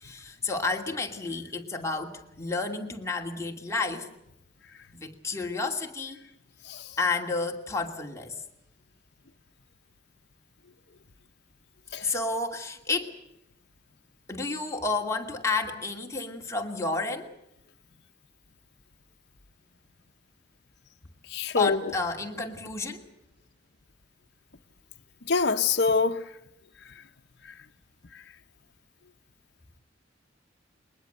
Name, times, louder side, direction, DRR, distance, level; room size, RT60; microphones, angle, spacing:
voice 1, 0.0-4.1 4.9-6.2 7.0-8.3 12.0-13.1 14.3-17.3 21.6-23.1, left 3 dB, 15° left, 2.6 m, -31 dB
voice 2, 21.3-21.9 25.3-26.2, left 4 dB, 60° left, 1.0 m, -25 dB
22.5 x 20.5 x 7.9 m
head